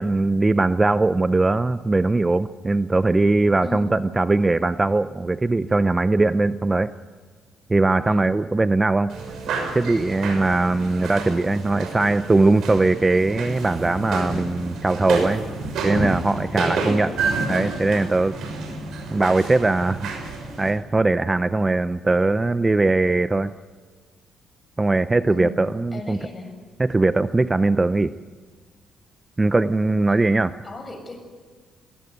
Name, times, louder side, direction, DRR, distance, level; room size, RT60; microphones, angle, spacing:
voice 1, 0.0-6.9 7.7-9.1 9.7-15.4 15.8-17.1 17.5-18.3 19.1-20.1 20.6-23.5 24.8-26.2 26.8-28.1 29.4-30.5, right 2 dB, 20° right, 13 dB, 0.6 m, -20 dB
voice 2, 3.6-4.0 8.1-8.2 15.8-16.0 16.4-16.8 17.4-17.7 25.3-25.6 25.9-26.5 30.6-31.4, left 2 dB, 25° left, 5 dB, 7.3 m, -37 dB
sound 1, 9.1-20.7, right 3 dB, 75° right, 6.4 m, -29 dB
21.0 x 18.5 x 9.5 m, 1.5 s
cardioid pair, 90°, 0 cm